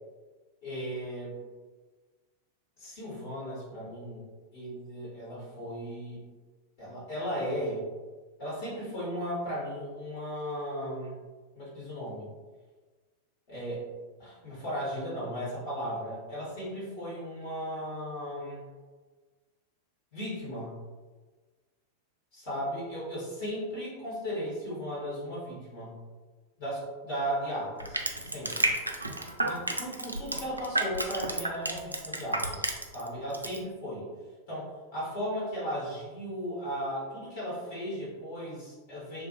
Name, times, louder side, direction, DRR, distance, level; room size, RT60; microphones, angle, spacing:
voice 1, 0.6-1.4 2.8-4.2 4.5-6.2 6.8-7.8 8.4-11.1 11.5-12.3 13.5-13.8 14.2-18.6 20.1-20.8 22.3-26.0 26.6-28.7 29.4-34.0 34.5-39.3, equal, 50° left, -8 dB, 1.5 m, -36 dB
Crushing, 27.8-33.1 33.3-33.6, right 2 dB, 80° right, 0.3 m, -30 dB
2.7 x 2.5 x 2.7 m, 1.3 s
figure-of-eight pair, 90°, 0 cm